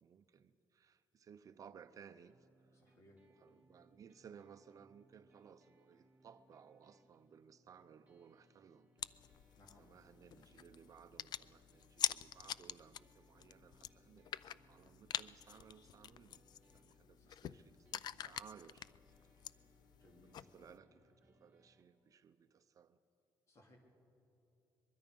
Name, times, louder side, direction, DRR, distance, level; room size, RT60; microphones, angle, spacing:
voice 1, 0.0-2.8 3.4-8.9 9.8-16.4 16.7-18.9 19.3-19.4 20.2-23.0, right 7 dB, 45° right, 11 dB, 0.6 m, -60 dB
sound 1, 2.3-21.8, right 1 dB, 20° right, 2.1 m, -72 dB
voice 2, 2.7-3.2 9.6-10.0 17.2-17.7 20.0-20.8 23.5-23.8, left 1 dB, 35° left, 1 dB, 3.1 m, -65 dB
sound 2, 9.0-20.8, left 10 dB, 55° left, 0.4 m, -46 dB
23.0 x 22.0 x 5.3 m, 2.7 s
cardioid pair, 140°, 8 cm